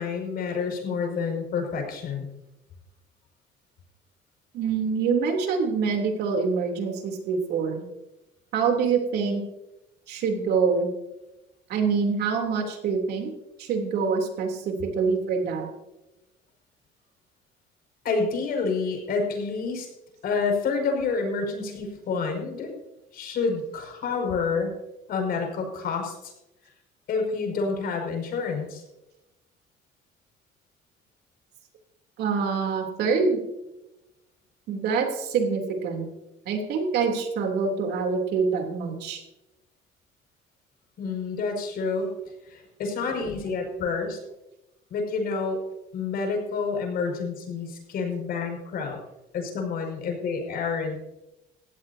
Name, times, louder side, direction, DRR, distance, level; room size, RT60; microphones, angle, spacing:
voice 1, 0.0-2.3 18.0-19.9 20.2-22.8 23.1-24.7 25.1-26.3 27.1-28.8 41.0-42.2 42.4-44.2 44.9-45.6 45.9-49.0 49.3-51.0, left 4 dB, 65° left, 2 dB, 5.8 m, -28 dB
voice 2, 4.5-7.8 8.5-9.4 10.1-10.9 11.7-13.3 13.6-15.7 32.2-33.4 34.7-36.1 36.4-39.2, right 5 dB, 75° right, 2 dB, 3.3 m, -25 dB
18.5 x 16.0 x 2.8 m, 0.95 s
cardioid pair, 110°, 17 cm